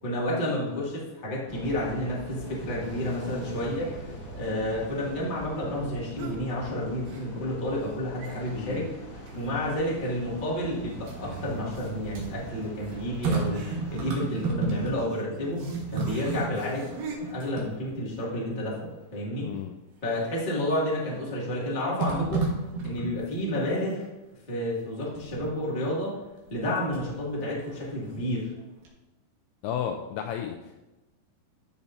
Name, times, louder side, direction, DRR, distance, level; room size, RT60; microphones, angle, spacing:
voice 1, 0.0-4.0 4.4-9.0 9.3-16.9 17.2-19.5 20.0-22.4 22.8-24.1 24.5-26.2 26.5-28.5, left 1 dB, 25° left, -6 dB, 1.1 m, -30 dB
sound 1, 1.5-14.1, right 1 dB, 45° left, 1.9 m, -41 dB
sound 2, 6.2-6.5 7.0-7.6 7.8-7.9 8.2-8.8 9.3-9.8 10.1-10.2 11.1-17.2, right 4 dB, 90° right, 1.5 m, -44 dB
voice 2, 8.5-8.9 19.4-19.8 29.6-30.8, left 9 dB, 90° left, 5 dB, 2.2 m, -33 dB
sound 3, 10.9-15.2 15.5-18.3 18.8-18.9 20.6-21.1 22.0-23.5 25.1-25.6 26.5-27.2 27.6-28.6 28.8-28.9, right 4 dB, 60° right, 3.0 m, -33 dB
12.5 x 7.0 x 2.7 m, 1.0 s
omnidirectional pair, 5.1 m